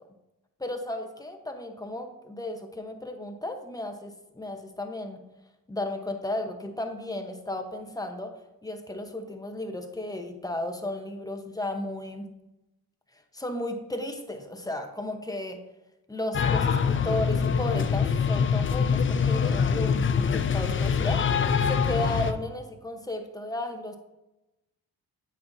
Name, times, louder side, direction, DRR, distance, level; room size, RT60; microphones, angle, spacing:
voice 1, 0.6-5.2 5.7-8.3 8.6-12.3 13.1-15.6 16.1-24.0, left 1 dB, 10° left, 5 dB, 0.9 m, -34 dB
sound 1, 16.3-22.3, left 6 dB, 35° left, 0.4 m, -24 dB
8.5 x 5.6 x 2.7 m, 0.97 s
cardioid pair, 85°, 39 cm